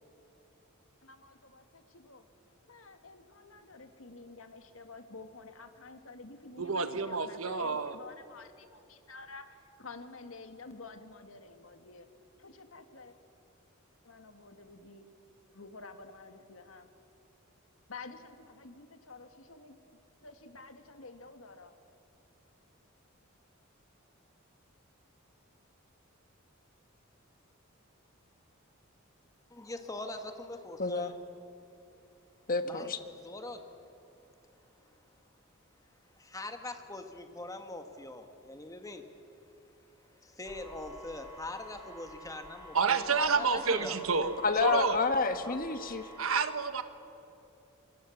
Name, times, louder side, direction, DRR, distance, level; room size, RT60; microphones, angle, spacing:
voice 1, 1.0-2.2 2.6-12.1 12.4-13.1 14.0-15.1 15.5-16.9 17.9-19.8 20.2-21.7, left 3 dB, 75° left, 7 dB, 1.9 m, -50 dB
voice 2, 6.6-7.9 42.7-45.0 46.2-46.8, right 5 dB, 85° right, 10 dB, 1.4 m, -29 dB
voice 3, 29.5-31.1 32.6-32.9 33.2-33.6 36.2-39.0 40.2-44.0 45.4-45.6, left 2 dB, 15° left, 6 dB, 1.7 m, -42 dB
voice 4, 30.8-31.1 32.5-33.0 44.4-46.0, left 4 dB, 45° left, 9 dB, 1.3 m, -29 dB
sound 1, 40.4-46.2, equal, 15° right, 5.9 m, -50 dB
27.0 x 23.5 x 7.2 m, 2.9 s
head